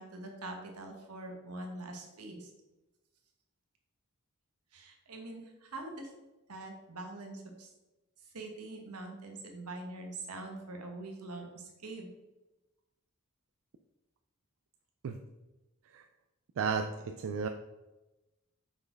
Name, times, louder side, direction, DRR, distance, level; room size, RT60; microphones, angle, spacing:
voice 1, 0.0-2.5 4.7-6.1 6.5-7.7 8.3-12.1, right 2 dB, 85° right, 3 dB, 1.3 m, -44 dB
voice 2, 16.6-17.5, right 5 dB, 60° right, 5 dB, 0.4 m, -33 dB
5.3 x 4.4 x 4.5 m, 1.0 s
head